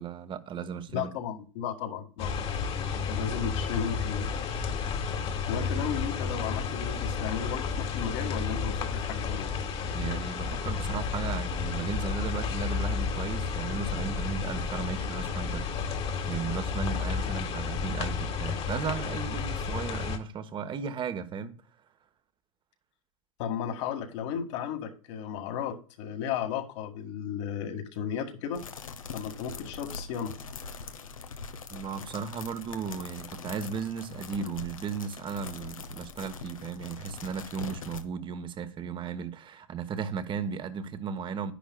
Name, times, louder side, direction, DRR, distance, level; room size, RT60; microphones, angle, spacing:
voice 1, 0.0-1.1 9.9-21.6 31.7-41.5, right 6 dB, 30° right, 1.1 m, -35 dB
voice 2, 0.9-2.5 2.9-4.3 5.5-9.5 23.4-28.7 29.1-30.3, left 8 dB, 60° left, 1.9 m, -34 dB
sound 1, 2.2-20.2, left 5 dB, 35° left, 1.6 m, -31 dB
sound 2, 28.5-38.0, left 5 dB, 85° left, 1.0 m, -42 dB
11.5 x 10.0 x 2.3 m
hypercardioid pair, 90°, 17 cm